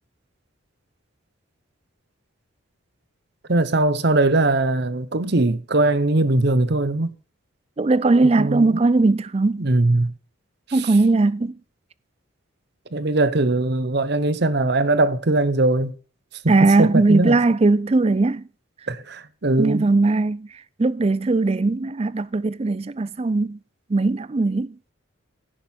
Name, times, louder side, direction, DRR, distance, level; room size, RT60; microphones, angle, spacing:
voice 1, 3.5-7.1 8.4-8.8 9.6-10.1 12.9-15.9 16.4-17.4 18.9-19.9, right 2 dB, 50° right, 0.8 m, -20 dB
voice 2, 7.8-9.7 10.7-11.5 16.5-18.4 19.6-20.5 20.8-23.6 23.9-24.8, right 3 dB, 30° right, 0.4 m, -19 dB
16.0 x 6.4 x 4.4 m
head